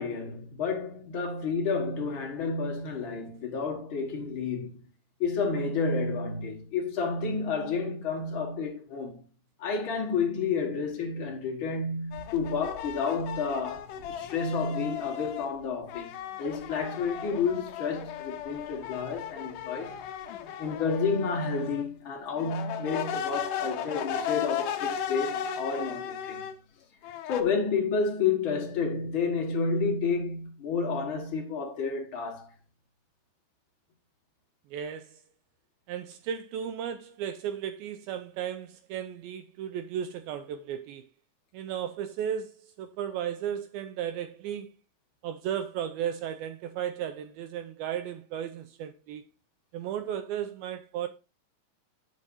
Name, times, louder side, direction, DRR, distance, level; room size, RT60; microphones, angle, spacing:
voice 1, 0.0-4.8 5.2-9.2 9.6-16.1 16.4-20.0 20.6-26.5 27.3-32.5, left 5 dB, 45° left, 1.7 m, -30 dB
sound 1, 12.1-15.5 15.9-21.9 22.4-26.5 27.0-27.4, left 9 dB, 85° left, 1.8 m, -36 dB
voice 2, 34.7-35.2 35.9-41.1 41.5-44.8 45.2-49.2 49.7-51.1, right 9 dB, 85° right, 2.2 m, -35 dB
15.0 x 5.4 x 2.7 m
omnidirectional pair, 4.8 m